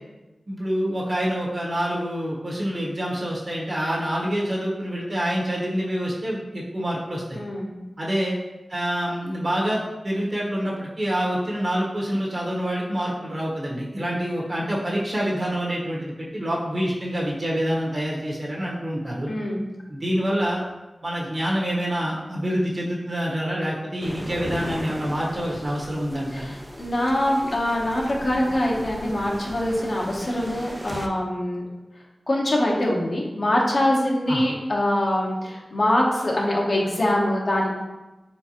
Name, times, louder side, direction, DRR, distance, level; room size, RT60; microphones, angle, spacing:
voice 1, 0.5-7.4 8.0-8.4 8.7-19.3 19.9-20.6 21.0-26.5 34.3-34.4, equal, 45° right, -4 dB, 1.2 m, -26 dB
voice 2, 7.3-7.7 19.3-19.6 26.3-31.6 32.3-37.7, left 1 dB, 60° left, -2 dB, 0.9 m, -24 dB
sound 1, 24.0-31.1, equal, 15° right, 0.4 m, -37 dB
4.5 x 3.5 x 2.9 m, 1.1 s
wide cardioid pair, 70°, 0 cm